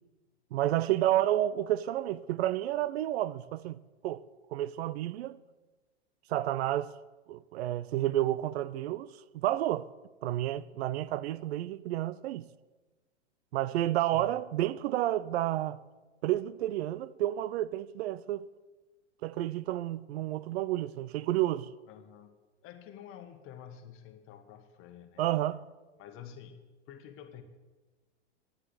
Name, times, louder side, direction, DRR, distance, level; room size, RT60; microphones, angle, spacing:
voice 1, 0.5-4.2 4.5-5.4 6.3-6.9 7.3-9.1 9.3-9.9 10.2-12.5 13.5-15.8 16.2-18.5 19.2-21.7 25.2-25.6, right 13 dB, 65° right, 0.5 m, -30 dB
voice 2, 14.0-14.4 21.9-22.3 22.6-25.3 26.0-26.6 26.9-27.4, left 9 dB, 35° left, 1.3 m, -49 dB
10.0 x 7.5 x 8.1 m
hypercardioid pair, 115°, 35 cm